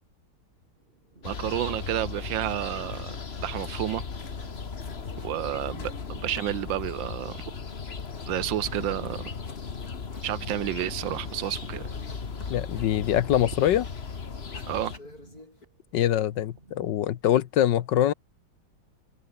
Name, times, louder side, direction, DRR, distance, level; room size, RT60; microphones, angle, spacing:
sound 1, 0.8-17.4, right 2 dB, 30° right, 3.7 m, -56 dB
sound 2, 1.2-15.0, left 5 dB, 35° left, 1.6 m, -37 dB
voice 1, 1.2-4.0 5.2-7.4 8.3-9.3 10.2-11.9 14.7-14.9, right 13 dB, 80° right, 1.6 m, -30 dB
sound 3, 3.9-4.5 4.8-6.1 6.3-14.1 14.4-15.6, left 2 dB, 50° left, 7.6 m, -54 dB
voice 2, 12.5-13.9 15.9-18.1, left 11 dB, 70° left, 1.5 m, -24 dB
omnidirectional pair, 2.0 m